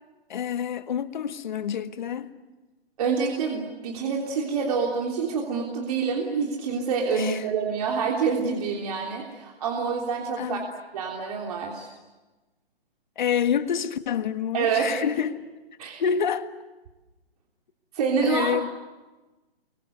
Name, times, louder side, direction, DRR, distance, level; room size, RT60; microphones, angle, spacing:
voice 1, 0.3-2.3 7.1-7.5 10.4-10.7 13.2-15.4 16.0-16.5 18.2-18.7, left 8 dB, 45° left, 1.6 m, -27 dB
voice 2, 3.0-10.6 10.9-11.9 14.5-15.0 15.8-16.0 17.9-18.5, right 5 dB, 35° right, 3.3 m, -27 dB
29.5 x 24.0 x 8.0 m
hypercardioid pair, 160°, 31 cm